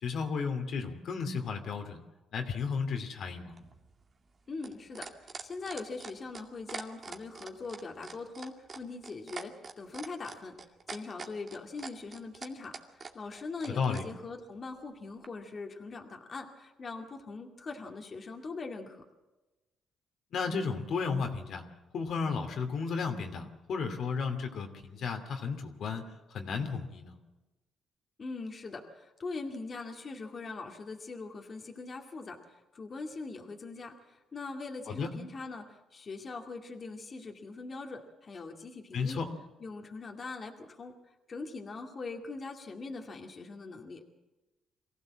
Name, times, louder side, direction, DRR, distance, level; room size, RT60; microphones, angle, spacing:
voice 1, 0.0-2.0 2.3-3.5 13.7-14.0 20.3-21.6 21.9-27.2 34.9-35.1 38.9-39.3, left 5 dB, 65° left, 5 dB, 2.6 m, -33 dB
sound 1, 3.5-14.1 15.2-15.3, right 4 dB, 45° right, 2.2 m, -43 dB
voice 2, 4.5-10.6 10.9-19.0 28.2-39.2 39.6-44.0, left 3 dB, 40° left, 2 dB, 2.3 m, -42 dB
23.5 x 16.0 x 7.6 m, 1.1 s
cardioid pair, 90°, 0 cm